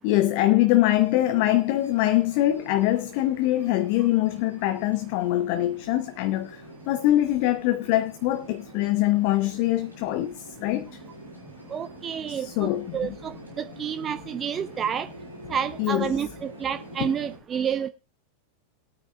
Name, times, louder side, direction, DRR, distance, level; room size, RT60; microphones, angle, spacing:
voice 1, 0.0-11.0 12.3-13.2 15.8-16.2 17.0-17.1, left 15 dB, 45° left, 0.6 m, -23 dB
sound 1, 0.7-17.4, equal, 90° right, 5.8 m, -45 dB
voice 2, 11.7-15.1 15.5-17.9, right 8 dB, 25° right, 0.5 m, -29 dB
22.0 x 8.9 x 2.3 m
figure-of-eight pair, 90°, 0 cm